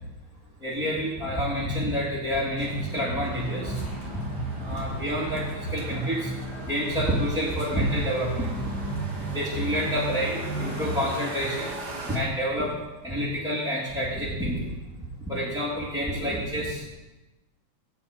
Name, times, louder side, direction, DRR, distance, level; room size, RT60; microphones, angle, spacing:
voice 1, 0.6-3.8 4.6-6.3 6.7-8.7 9.1-11.7 12.1-12.7 13.0-14.7 15.3-16.8, equal, ahead, -8 dB, 2.9 m, -28 dB
sound 1, 2.6-11.0, right 2 dB, 55° left, 3.7 m, -34 dB
sound 2, 3.3-12.2, right 2 dB, 40° right, 2.2 m, -41 dB
17.5 x 5.9 x 8.9 m, 1.1 s
omnidirectional pair, 3.4 m